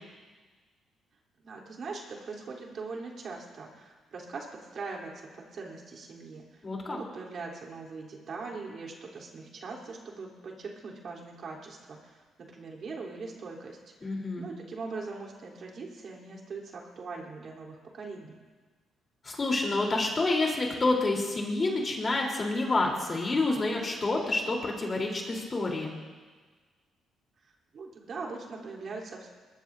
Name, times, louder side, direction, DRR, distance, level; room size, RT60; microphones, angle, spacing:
voice 1, 1.4-18.4 27.7-29.3, right 4 dB, 55° right, -2 dB, 3.7 m, -41 dB
voice 2, 6.6-7.0 14.0-14.4 19.2-25.9, left 2 dB, 30° left, -1 dB, 3.9 m, -28 dB
21.5 x 21.5 x 2.8 m, 1.4 s
cardioid pair, 90°, 0 cm